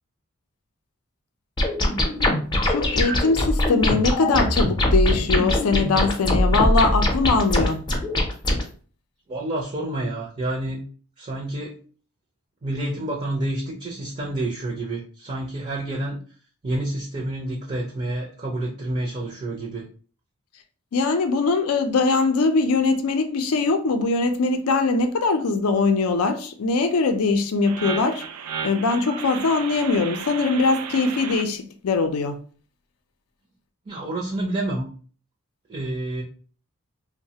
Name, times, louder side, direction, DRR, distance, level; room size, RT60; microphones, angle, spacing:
sound 1, 1.6-8.6, left 1 dB, 20° left, 0.5 m, -22 dB
voice 1, 2.6-7.8 20.9-28.2 28.6-32.4, left 3 dB, 75° left, 0.4 m, -22 dB
voice 2, 9.3-10.8 11.2-11.8 12.6-16.2 16.6-19.9 33.9-34.9 35.7-36.2, right 1 dB, 30° right, 0.5 m, -28 dB
sound 2, 27.6-31.4, right 7 dB, 90° right, 0.4 m, -34 dB
3.1 x 2.1 x 2.7 m
head